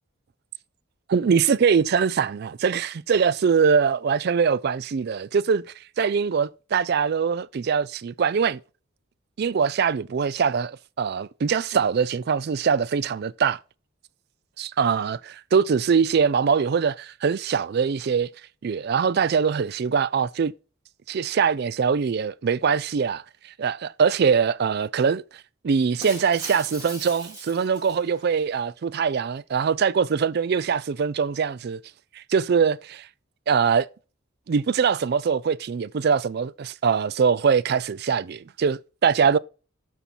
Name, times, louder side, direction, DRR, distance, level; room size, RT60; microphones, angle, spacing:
voice 1, 1.1-5.6 6.0-8.6 9.4-13.6 14.6-18.3 18.6-20.5 21.1-25.2 25.6-31.8 32.1-33.1 33.5-33.9 34.5-39.4, right 6 dB, 50° right, 0.3 m, -23 dB
Shatter, 26.0-28.4, right 1 dB, 15° right, 2.9 m, -40 dB
12.0 x 4.3 x 4.3 m
head